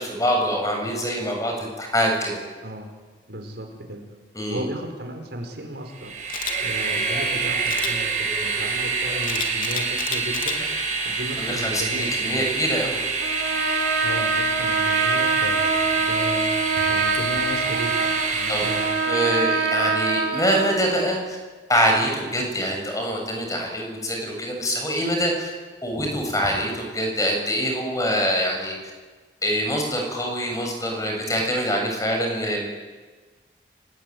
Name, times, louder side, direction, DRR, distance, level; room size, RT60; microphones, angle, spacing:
voice 1, 0.0-2.4 4.3-4.6 11.4-13.0 18.5-18.7 19.1-21.4 21.7-25.5 25.8-28.8 29.4-32.6, equal, 20° left, 2 dB, 7.1 m, -24 dB
voice 2, 3.3-4.0 4.5-6.1 6.6-10.7 11.0-12.4 14.0-16.5 16.9-19.0, equal, 70° right, 4 dB, 5.2 m, -35 dB
Train, 5.9-19.4, right 4 dB, 40° right, 7.0 m, -27 dB
Camera, 6.3-6.6 7.7-7.9 9.2-10.6 11.1-11.3, left 7 dB, 50° left, 3.2 m, -30 dB
Trumpet, 13.2-20.9, right 4 dB, 90° right, 2.8 m, -24 dB
30.0 x 20.0 x 9.6 m, 1.4 s
head